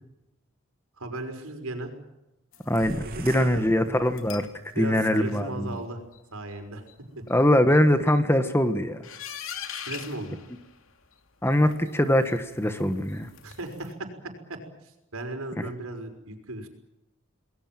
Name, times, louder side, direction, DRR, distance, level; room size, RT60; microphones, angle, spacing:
voice 1, 1.0-1.9 3.0-3.7 4.7-6.0 6.3-6.8 7.2-7.3 9.8-10.4 13.4-14.1 14.5-16.7, right 2 dB, 80° right, 6 dB, 5.8 m, -36 dB
sound 1, 2.5-3.4 4.1-4.6 4.9-5.4 5.7-5.8 6.1-6.2 6.5-6.6 6.9-7.0 7.3-7.4 7.7-8.2 9.0-11.1 11.5-13.9, left 8 dB, 70° left, 2.7 m, -43 dB
voice 2, 2.7-4.5 4.8-5.7 7.3-9.0 11.4-13.3, left 1 dB, 10° left, 9 dB, 1.4 m, -22 dB
sound 2, 2.8-4.6, right 2 dB, 45° right, 2.7 m, -42 dB
28.5 x 20.5 x 7.6 m, 0.94 s
head